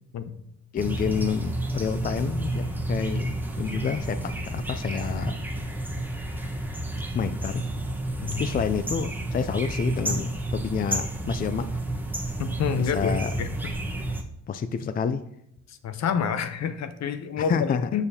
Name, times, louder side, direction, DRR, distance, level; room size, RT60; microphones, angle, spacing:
voice 1, 0.7-4.2 4.5-5.4 7.1-7.6 8.4-11.7 12.8-13.3 14.5-15.2 17.4-17.8, left 6 dB, 30° left, 11 dB, 0.4 m, -28 dB
sound 1, 0.8-14.2, right 1 dB, 5° right, 1.2 m, -31 dB
voice 2, 12.4-13.1 13.4-13.5 15.7-18.0, left 7 dB, 60° left, 10 dB, 0.8 m, -28 dB
6.9 x 6.6 x 2.8 m, 0.77 s
cardioid pair, 90°, 30 cm